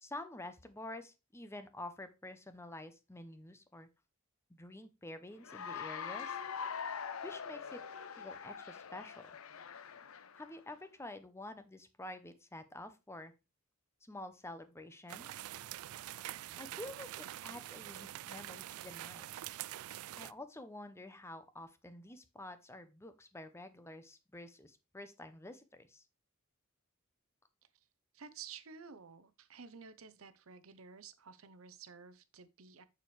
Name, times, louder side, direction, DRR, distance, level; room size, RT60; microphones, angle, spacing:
voice 1, 0.0-3.9 4.5-6.4 7.2-7.8 8.2-9.4 10.4-13.3 14.0-15.4 16.6-19.2 20.2-26.1, left 1 dB, 10° left, 0.7 m, -49 dB
Cheering / Applause, 5.4-10.6, left 6 dB, 70° left, 0.6 m, -43 dB
sound 1, 15.1-20.3, right 14 dB, 90° right, 0.3 m, -45 dB
voice 2, 28.1-32.9, right 6 dB, 70° right, 0.8 m, -52 dB
6.8 x 6.5 x 3.3 m
head